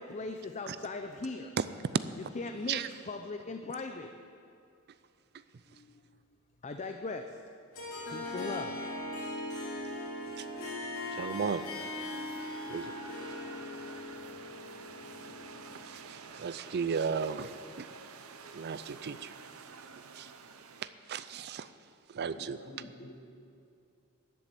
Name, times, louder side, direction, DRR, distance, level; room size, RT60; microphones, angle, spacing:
voice 1, 0.0-1.5 2.3-4.1 5.7-5.9 6.6-7.3 8.1-8.8, left 3 dB, 35° left, 6 dB, 0.5 m, -39 dB
Harp, 7.7-16.2, left 2 dB, 75° left, 2.9 m, -40 dB
sound 1, 10.2-20.9, right 5 dB, 90° right, 0.8 m, -50 dB
voice 2, 11.1-11.6 12.7-12.9 15.9-17.5 17.8-17.9 18.5-19.3 20.2-20.3 20.8-21.7 22.1-22.6, right 6 dB, 50° right, 14 dB, 0.4 m, -35 dB
voice 3, 22.3-23.2, left 1 dB, 50° left, 3 dB, 1.5 m, -48 dB
12.5 x 7.4 x 8.2 m, 2.6 s
head